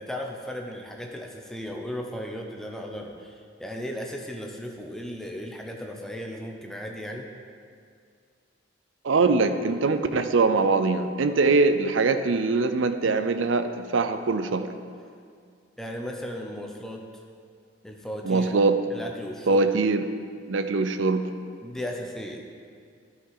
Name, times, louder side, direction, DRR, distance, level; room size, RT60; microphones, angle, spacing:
voice 1, 0.0-7.3 15.8-17.0 17.8-18.6 18.9-19.7 21.6-22.5, equal, ahead, 1 dB, 0.7 m, -36 dB
voice 2, 9.0-14.7 18.2-18.8 19.5-20.0 20.5-21.3, right 3 dB, 75° right, 9 dB, 0.5 m, -22 dB
12.5 x 5.7 x 4.9 m, 2.2 s
head